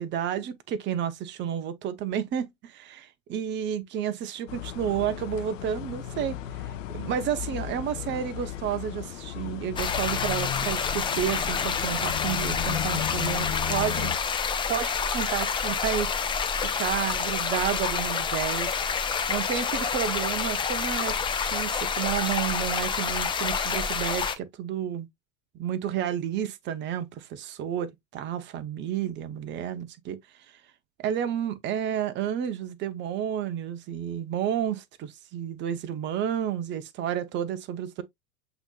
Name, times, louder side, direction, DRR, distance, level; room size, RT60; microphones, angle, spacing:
voice 1, 0.0-14.1 14.7-18.7 19.0-25.1 25.5-30.2 31.0-38.0, right 9 dB, 25° right, 0.6 m, -31 dB
sound 1, 4.5-14.2, left 12 dB, 65° left, 0.7 m, -35 dB
sound 2, 9.8-24.4, left 6 dB, 10° left, 0.5 m, -28 dB
7.9 x 2.8 x 2.3 m
figure-of-eight pair, 85°, 42 cm